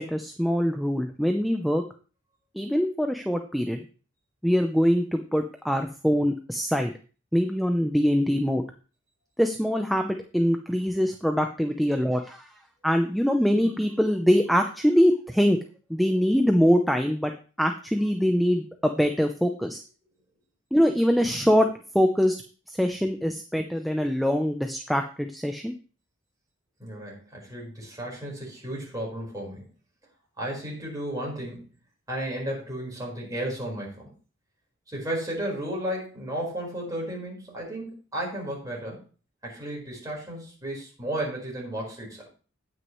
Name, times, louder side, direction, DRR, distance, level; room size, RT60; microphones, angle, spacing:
voice 1, 0.0-1.8 2.5-3.8 4.4-6.9 7.3-8.6 9.4-12.5 12.8-15.6 15.9-17.3 17.6-19.8 20.7-21.7 21.9-22.4 22.7-25.7, equal, ahead, 5 dB, 0.6 m, -23 dB
voice 2, 26.8-29.6 30.4-31.6 32.1-34.1 34.9-39.0 39.4-42.3, right 1 dB, 20° right, -3 dB, 4.7 m, -33 dB
17.5 x 6.2 x 3.1 m, 0.37 s
head